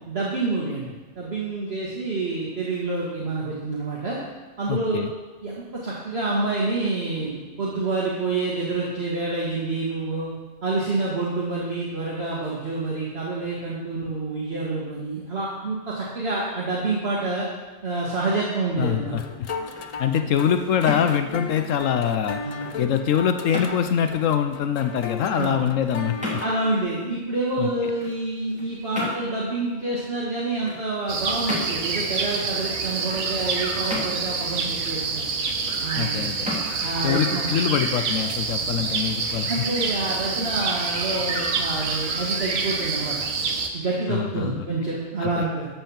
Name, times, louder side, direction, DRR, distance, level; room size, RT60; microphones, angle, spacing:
voice 1, 0.1-0.9 1.2-4.2 4.6-5.0 5.4-10.3 10.6-17.5 17.8-19.2 22.4-22.7 25.4-25.6 26.4-35.3 35.8-36.2 36.8-37.5 38.7-38.9 39.5-43.2 43.7-45.7, right 2 dB, 50° right, -6 dB, 1.9 m, -27 dB
voice 2, 4.7-5.1 18.8-19.2 20.0-22.4 22.8-26.4 27.6-27.7 36.0-36.5 37.0-39.5 44.1-44.6 45.2-45.5, left 8 dB, 75° left, 8 dB, 1.0 m, -24 dB
sound 1, 19.1-26.8, left 4 dB, 50° left, 0.4 m, -35 dB
sound 2, 19.6-38.4, left 1 dB, 5° right, 2.4 m, -38 dB
sound 3, 31.1-43.7, right 4 dB, 85° right, 1.4 m, -27 dB
13.0 x 4.5 x 7.1 m, 1.2 s
omnidirectional pair, 1.4 m